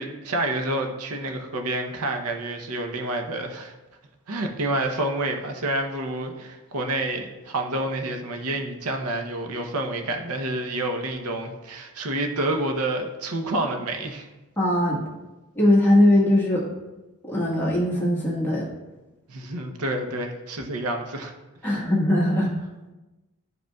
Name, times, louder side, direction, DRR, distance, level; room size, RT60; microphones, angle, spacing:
voice 1, 0.0-3.7 4.3-14.3 19.3-21.3 21.6-21.8, right 1 dB, 85° right, 4 dB, 0.8 m, -28 dB
voice 2, 14.6-15.0 15.5-16.6 17.3-18.6 21.6-22.5, left 1 dB, 10° left, -6 dB, 1.4 m, -20 dB
11.0 x 5.1 x 2.3 m, 1.1 s
head